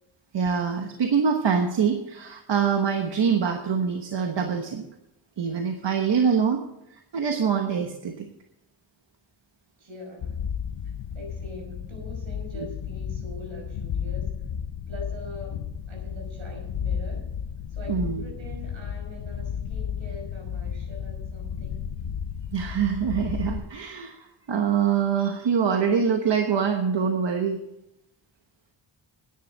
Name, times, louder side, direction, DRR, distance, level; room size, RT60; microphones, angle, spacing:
voice 1, 0.3-4.8 5.4-6.6 6.9-8.3 12.5-12.7 17.9-18.2 22.5-27.6, right 6 dB, 65° right, 4 dB, 1.3 m, -24 dB
voice 2, 9.8-10.4 11.1-14.3 14.9-17.3 17.7-21.9, left 1 dB, 80° right, 1 dB, 5.9 m, -43 dB
sound 1, 10.2-23.7, left 8 dB, 75° left, 0.9 m, -33 dB
10.5 x 10.0 x 6.6 m, 0.85 s
wide cardioid pair, 155°, 46 cm